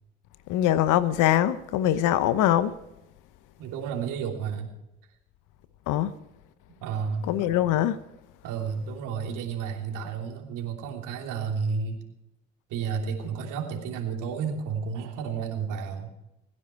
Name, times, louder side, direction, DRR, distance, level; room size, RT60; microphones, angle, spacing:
voice 1, 0.5-2.7 5.9-6.1 7.2-8.0, left 12 dB, 70° left, 1.0 m, -23 dB
voice 2, 3.6-4.7 6.8-7.3 8.4-12.0 12.7-16.1, right 6 dB, 75° right, 3.2 m, -31 dB
25.0 x 10.0 x 4.6 m
hypercardioid pair, 60°, 32 cm